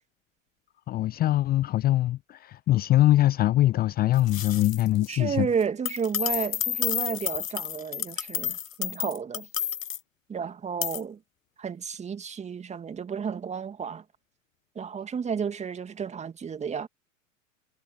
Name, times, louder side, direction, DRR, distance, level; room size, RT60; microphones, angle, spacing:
voice 1, 0.9-5.5, left 14 dB, 25° left, 0.8 m, -23 dB
sound 1, 4.2-5.2 5.6-10.0 10.8-11.0, left 10 dB, 80° left, 0.6 m, -31 dB
voice 2, 5.1-9.5 10.3-11.2 11.6-14.0 14.8-16.9, right 6 dB, 15° right, 2.2 m, -32 dB
figure-of-eight pair, 95°, 40 cm